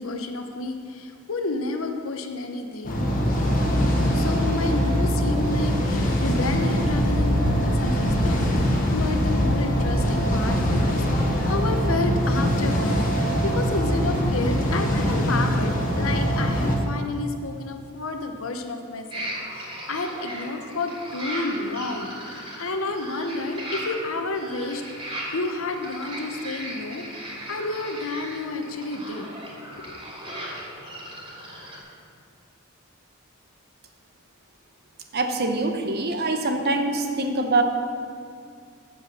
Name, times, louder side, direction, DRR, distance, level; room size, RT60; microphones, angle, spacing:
voice 1, 0.0-3.0 4.1-24.8 25.3-29.3 29.8-30.0, left 2 dB, 70° left, 5 dB, 0.9 m, -30 dB
sound 1, 2.8-16.8, equal, 40° left, 1.4 m, -22 dB
sound 2, 19.1-31.8, right 1 dB, 30° right, 2.6 m, -37 dB
voice 2, 35.1-37.6, right 2 dB, 50° right, 5 dB, 0.9 m, -24 dB
7.6 x 7.2 x 6.7 m, 2.3 s
head